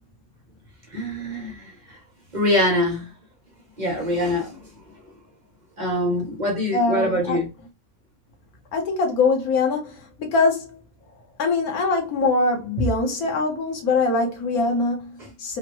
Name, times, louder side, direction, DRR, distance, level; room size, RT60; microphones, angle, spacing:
voice 1, 0.9-2.0 2.3-3.1 3.8-4.6 5.8-7.5, left 1 dB, 40° right, 0.8 m, -24 dB
voice 2, 6.7-7.4 8.7-10.8 11.4-15.6, left 3 dB, 90° left, 1.5 m, -23 dB
3.6 x 2.1 x 2.9 m
omnidirectional pair, 1.5 m